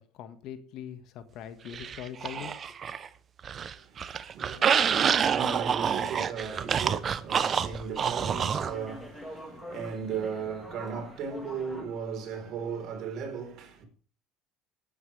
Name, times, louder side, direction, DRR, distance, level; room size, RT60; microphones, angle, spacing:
voice 1, 0.0-2.5, left 9 dB, 65° left, 1.7 m, -42 dB
sound 1, 1.7-3.1 3.4-8.7, right 7 dB, 35° right, 0.8 m, -27 dB
voice 2, 3.5-13.8, right 6 dB, 55° right, 4.1 m, -37 dB
sound 2, 5.5-11.8, left 1 dB, 10° left, 3.2 m, -46 dB
18.5 x 9.2 x 3.5 m
supercardioid pair, 110°, 0 cm